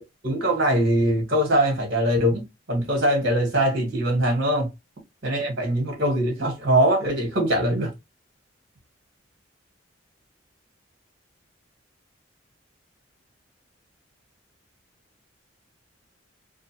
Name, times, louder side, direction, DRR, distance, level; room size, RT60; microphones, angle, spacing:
voice 1, 0.2-2.4 2.7-4.7 5.2-7.9, right 1 dB, 55° right, 1.2 m, -22 dB
2.5 x 2.3 x 2.8 m
head